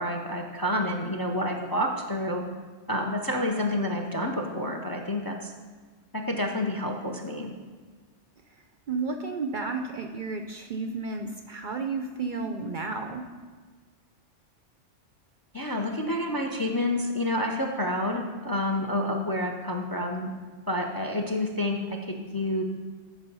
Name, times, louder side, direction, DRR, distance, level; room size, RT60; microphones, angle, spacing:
voice 1, 0.0-2.4 2.9-5.5 6.1-7.5 15.5-20.3 20.7-22.6, left 1 dB, 25° left, 3 dB, 0.5 m, -29 dB
voice 2, 8.9-13.2, right 4 dB, 55° right, 5 dB, 0.6 m, -32 dB
11.0 x 4.8 x 5.4 m, 1.4 s
omnidirectional pair, 1.2 m